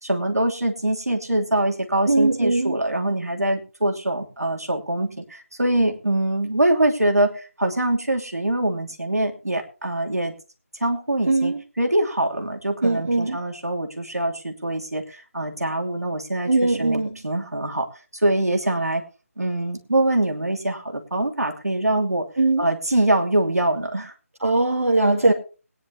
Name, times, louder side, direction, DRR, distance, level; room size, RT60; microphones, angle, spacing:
voice 1, 0.0-10.3 10.8-17.9 18.2-19.0 19.4-22.3 22.6-24.1 25.3-25.4, right 1 dB, 80° right, 2 dB, 2.9 m, -24 dB
voice 2, 2.1-2.8 11.3-11.6 12.8-13.4 16.5-17.2 22.4-22.7 24.4-25.3, right 2 dB, 60° right, -1 dB, 2.3 m, -20 dB
21.0 x 10.0 x 2.8 m, 0.33 s
figure-of-eight pair, 160°, 8 cm